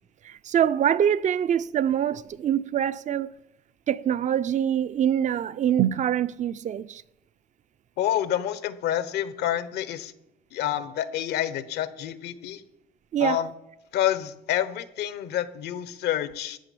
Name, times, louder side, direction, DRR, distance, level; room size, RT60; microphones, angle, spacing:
voice 1, 0.2-3.3 3.9-7.0 13.1-13.4, right 9 dB, 45° right, 0.6 m, -24 dB
voice 2, 8.0-10.1 10.5-12.6 13.2-13.5 13.9-16.6, left 11 dB, 75° left, 1.1 m, -28 dB
14.0 x 6.1 x 9.3 m
cardioid pair, 110°, 17 cm